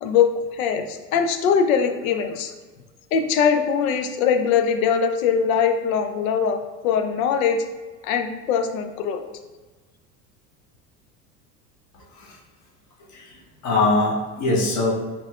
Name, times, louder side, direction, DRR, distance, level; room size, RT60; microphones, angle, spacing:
voice 1, 0.0-2.5 3.1-7.6 8.0-9.2, left 6 dB, 60° left, 7 dB, 0.6 m, -22 dB
voice 2, 13.6-14.9, left 2 dB, 35° left, -2 dB, 1.1 m, -22 dB
5.4 x 3.1 x 2.3 m, 1.4 s
figure-of-eight pair, 70°, 49 cm